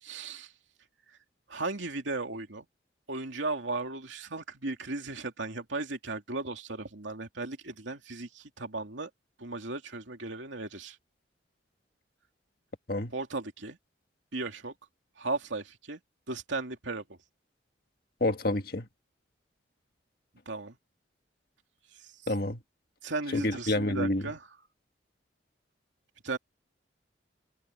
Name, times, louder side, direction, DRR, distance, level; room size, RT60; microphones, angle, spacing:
voice 1, 0.0-0.5 1.5-2.7 3.1-9.1 9.4-11.0 13.1-13.8 14.3-14.7 15.2-16.0 16.3-17.0 20.5-20.8 22.0-22.1 23.0-24.5 26.2-26.4, right 3 dB, 80° right, 2.7 m, -36 dB
voice 2, 18.2-18.9 22.3-22.6 23.3-24.2, left 1 dB, 50° left, 1.8 m, -28 dB
head